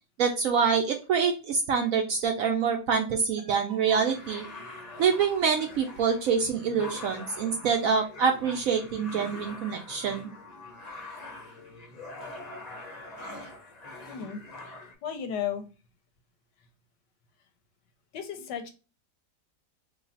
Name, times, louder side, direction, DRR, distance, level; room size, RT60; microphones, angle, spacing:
voice 1, 0.2-4.4 5.0-10.3, right 6 dB, 70° right, 3 dB, 0.8 m, -26 dB
sound 1, 3.9-14.9, left 2 dB, 40° left, 0.6 m, -44 dB
voice 2, 14.1-15.7 18.1-18.7, left 8 dB, 85° left, 7 dB, 1.3 m, -35 dB
3.2 x 2.3 x 4.0 m, 0.33 s
omnidirectional pair, 1.8 m